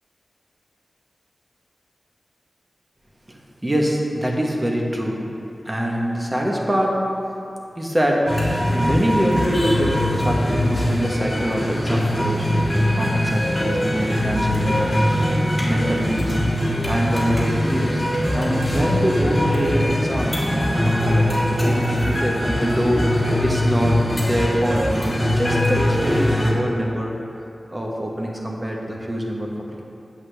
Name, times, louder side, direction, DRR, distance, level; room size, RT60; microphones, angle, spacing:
voice 1, 3.3-5.3 5.6-7.2 7.7-12.7 13.0-15.1 15.6-16.4 16.8-18.1 18.3-27.2 27.7-29.5, equal, 20° right, -1 dB, 1.2 m, -24 dB
sound 1, 8.3-26.5, left 1 dB, 20° left, 1.7 m, -21 dB
7.9 x 7.9 x 3.4 m, 2.6 s
wide cardioid pair, 75°, 0 cm